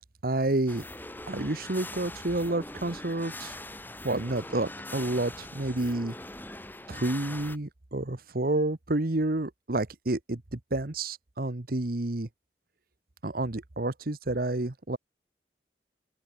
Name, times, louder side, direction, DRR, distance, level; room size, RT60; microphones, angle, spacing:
voice 1, 0.2-0.8 1.3-3.5 4.0-6.1 6.9-12.3 13.2-15.0, right 2 dB, 55° right, 1.2 m, -29 dB
sound 1, 0.7-7.6, left 1 dB, 10° left, 7.0 m, -42 dB
open air
head